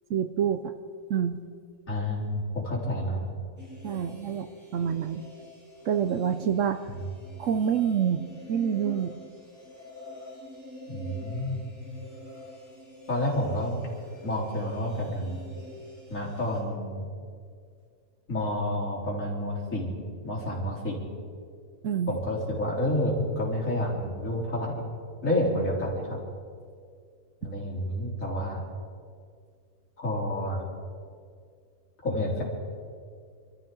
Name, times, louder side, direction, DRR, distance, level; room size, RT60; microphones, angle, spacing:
voice 1, 0.1-0.7 1.1-1.4 3.8-5.2 5.9-6.8 7.4-9.1 21.8-22.1, right 8 dB, 65° right, 9 dB, 0.9 m, -27 dB
voice 2, 1.9-3.3 6.9-7.0 10.9-11.7 13.1-13.8 14.2-15.4 16.1-17.0 18.3-19.9 20.2-21.0 22.1-24.8 25.2-26.2 27.4-28.6 30.0-30.7 32.0-32.4, left 1 dB, 60° left, -4 dB, 3.8 m, -29 dB
sound 1, 3.6-16.6, left 1 dB, 10° right, 3.1 m, -46 dB
25.5 x 13.5 x 3.8 m, 2.2 s
omnidirectional pair, 1.6 m